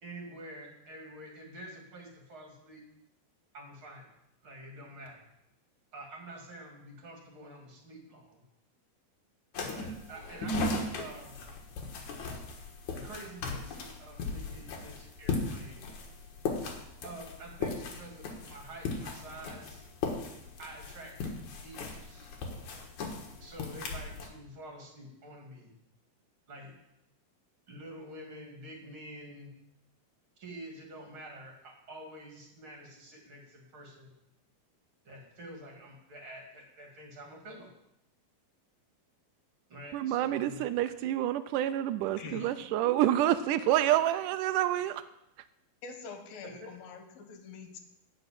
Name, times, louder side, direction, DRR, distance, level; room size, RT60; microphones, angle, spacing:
voice 1, 0.0-2.8 3.5-4.0 4.4-5.2 5.9-8.4 9.5-11.4 12.9-15.8 17.0-19.9 20.6-22.3 23.4-25.7 26.5-26.7 27.7-29.5 30.4-34.1 35.0-37.7 39.7-40.6 42.2-42.5 42.8-42.9 43.3-43.7 46.4-46.7, right 1 dB, 35° right, 3.0 m, -48 dB
sound 1, 9.5-24.3, left 3 dB, 60° left, 2.7 m, -37 dB
voice 2, 39.9-45.0, right 12 dB, 90° right, 1.8 m, -28 dB
voice 3, 42.2-42.5 45.8-47.8, left 5 dB, 75° left, 2.9 m, -45 dB
12.0 x 5.9 x 8.9 m
omnidirectional pair, 4.3 m